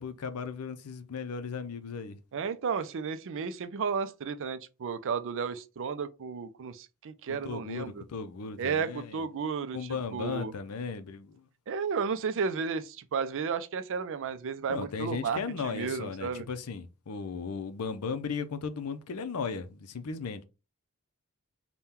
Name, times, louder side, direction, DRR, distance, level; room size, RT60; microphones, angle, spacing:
voice 1, 0.0-2.2 7.3-9.2 9.7-11.4 14.7-20.4, left 5 dB, 75° left, 0.5 m, -36 dB
voice 2, 2.3-8.0 8.6-10.5 11.7-16.5, right 6 dB, 60° right, 0.4 m, -33 dB
3.6 x 2.2 x 4.2 m
head